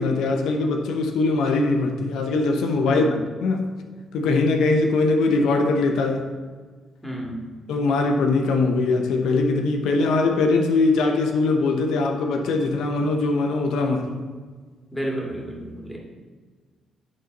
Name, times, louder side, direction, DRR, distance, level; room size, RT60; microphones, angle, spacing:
voice 1, 0.0-3.0 3.4-3.7 4.1-6.3 7.7-14.2, left 3 dB, 85° left, 4 dB, 0.8 m, -21 dB
voice 2, 2.9-3.2 7.0-7.4 14.9-16.0, right 1 dB, 5° left, -2 dB, 2.2 m, -31 dB
11.0 x 3.9 x 5.3 m, 1.5 s
cardioid pair, 90°, 0 cm